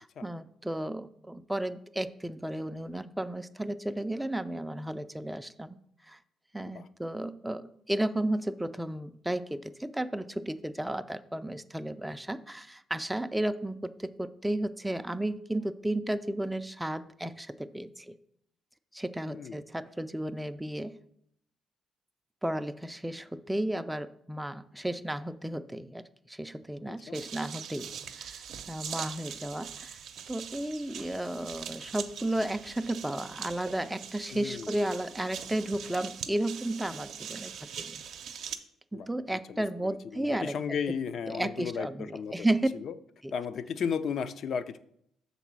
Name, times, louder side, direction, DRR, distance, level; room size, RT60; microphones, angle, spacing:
voice 1, 0.0-5.8 6.1-6.2 6.5-18.1 18.9-21.0 22.4-27.9 28.2-30.0 30.3-38.0 38.9-40.8 41.3-42.7 43.2-43.3, right 1 dB, 5° right, 10 dB, 0.4 m, -33 dB
voice 2, 19.2-19.6 26.9-27.2 34.3-34.7 38.9-39.1 39.5-41.9 42.1-42.3 42.8-42.9 43.3-44.8, left 7 dB, 65° left, 12 dB, 0.5 m, -34 dB
sound 1, 27.1-38.6, right 8 dB, 75° right, 0.6 m, -42 dB
6.5 x 4.1 x 6.0 m, 0.71 s
cardioid pair, 90°, 0 cm